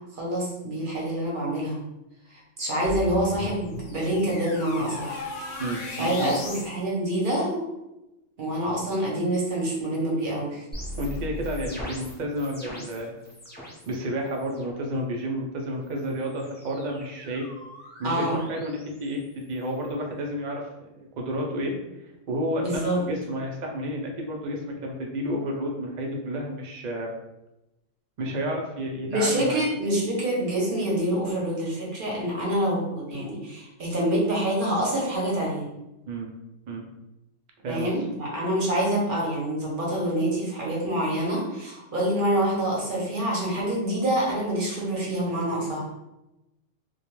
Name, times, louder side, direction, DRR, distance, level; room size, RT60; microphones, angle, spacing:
voice 1, 0.1-1.8 2.3-5.2 6.0-7.7 8.4-10.6 18.0-18.4 22.6-23.0 29.1-35.7 37.7-45.9, right 1 dB, 50° right, -4 dB, 0.7 m, -26 dB
sound 1, 2.8-6.7, left 2 dB, 70° left, 0.8 m, -36 dB
voice 2, 5.6-6.4 11.0-13.1 13.9-17.5 18.0-21.7 22.3-27.1 28.2-29.6 36.1-36.3 36.7-36.8 37.6-37.9, equal, 75° right, 1 dB, 0.4 m, -31 dB
sound 2, 10.7-14.0 14.3-14.8 15.8-20.0, equal, 10° left, 0.5 m, -41 dB
2.2 x 2.2 x 2.9 m, 0.93 s
omnidirectional pair, 1.3 m